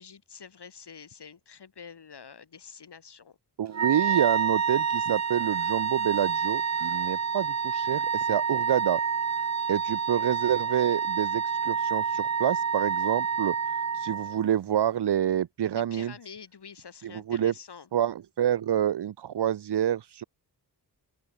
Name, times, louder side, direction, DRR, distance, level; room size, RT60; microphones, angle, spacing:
voice 1, 0.0-3.4 15.7-17.9, left 6 dB, 75° left, 7.6 m, -47 dB
voice 2, 3.6-9.0 9.7-13.5 13.9-16.1 17.0-17.5 17.9-20.2, right 10 dB, 75° right, 0.8 m, -27 dB
Wind instrument woodwind instrument, 3.7-14.5, right 6 dB, 40° right, 1.0 m, -28 dB
open air
wide cardioid pair, 165°, 41 cm